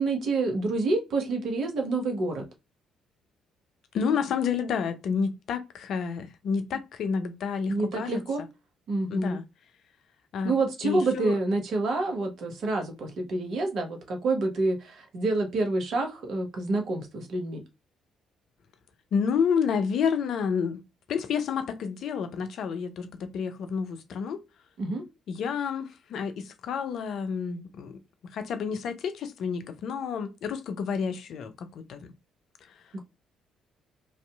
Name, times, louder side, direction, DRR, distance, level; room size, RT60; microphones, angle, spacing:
voice 1, 0.0-2.4 7.7-8.4 8.9-9.4 10.4-17.6 24.8-25.0 32.9-33.0, right 2 dB, 60° right, 0.8 m, -28 dB
voice 2, 3.9-8.5 9.1-9.4 10.3-10.5 10.8-11.4 19.1-20.8 21.1-24.4 25.3-32.1 32.6-32.8, left 6 dB, 60° left, 0.4 m, -30 dB
2.6 x 2.3 x 2.2 m
hypercardioid pair, 45°, 0 cm